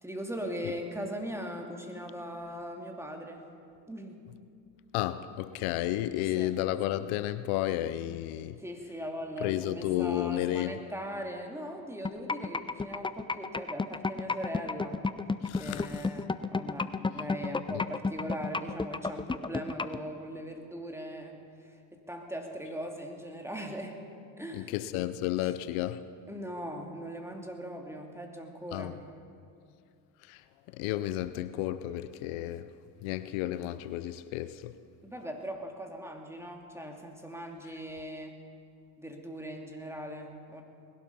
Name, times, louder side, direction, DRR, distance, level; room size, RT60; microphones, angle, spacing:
voice 1, 0.0-3.4 3.9-4.2 6.1-6.5 8.6-15.0 15.6-24.0 24.4-24.7 25.4-25.5 26.3-29.0 35.0-38.4 39.0-40.6, equal, 5° right, 2.5 m, -40 dB
voice 2, 4.9-8.6 9.4-10.8 15.4-16.1 17.7-17.9 24.5-26.0 28.7-29.0 30.2-30.4 30.7-32.7 33.0-34.8, left 14 dB, 80° left, 0.7 m, -32 dB
sound 1, 12.0-20.0, left 4 dB, 10° left, 0.4 m, -31 dB
20.0 x 12.0 x 5.4 m
supercardioid pair, 65°, 48 cm